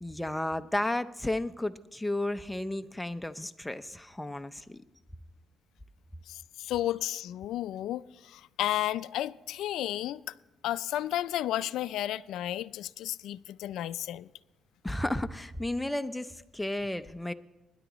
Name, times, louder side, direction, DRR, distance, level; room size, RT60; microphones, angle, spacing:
voice 1, 0.0-4.8 14.8-17.3, left 1 dB, 10° left, 0.6 m, -33 dB
voice 2, 6.3-10.3 10.6-14.3, left 13 dB, 85° left, 0.3 m, -33 dB
20.5 x 10.5 x 3.0 m
cardioid pair, 90°, 0 cm